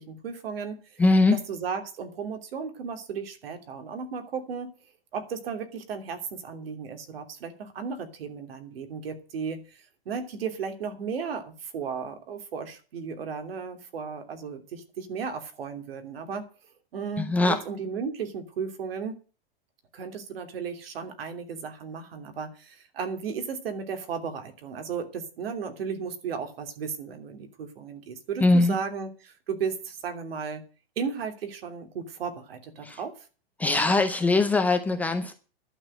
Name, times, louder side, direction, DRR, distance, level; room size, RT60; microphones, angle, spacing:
voice 1, 0.0-1.0 1.3-4.7 5.1-16.5 16.9-19.2 19.9-30.6 31.0-33.3, right 6 dB, 70° right, 6 dB, 3.0 m, -35 dB
voice 2, 1.0-1.4 17.2-17.6 28.4-28.8 32.8-33.0 33.6-35.3, left 2 dB, 5° left, 5 dB, 0.5 m, -21 dB
11.5 x 6.8 x 9.0 m, 0.36 s
supercardioid pair, 165°, 30 cm